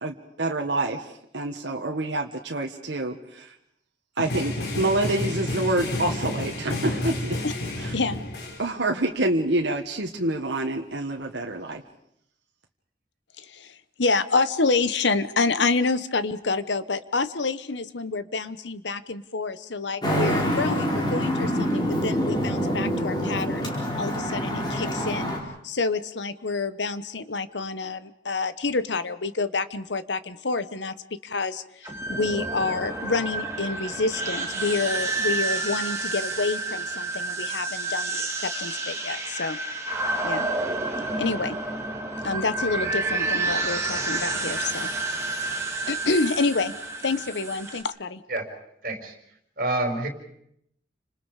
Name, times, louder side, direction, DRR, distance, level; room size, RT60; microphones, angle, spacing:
voice 1, 0.0-3.5 4.2-7.4 7.8-7.9 8.6-11.8, right 2 dB, 80° right, 1 dB, 1.6 m, -27 dB
sound 1, 4.2-8.6, left 1 dB, 65° left, 3.8 m, -30 dB
voice 2, 13.4-23.7 24.0-25.3 25.6-30.9 31.2-39.6 40.2-40.5 41.2-41.6 42.2-44.9 45.2-45.5 45.9-46.7 47.0-48.2, left 3 dB, 80° left, 13 dB, 1.2 m, -28 dB
Traffic noise roadway noise, 20.0-25.4, equal, 25° left, 5.1 m, -26 dB
sound 2, 31.8-47.8, right 2 dB, 15° right, 2.7 m, -29 dB
voice 3, 48.8-49.2 49.6-50.1, right 2 dB, 50° right, 3 dB, 5.3 m, -27 dB
30.0 x 26.0 x 5.0 m, 0.74 s
head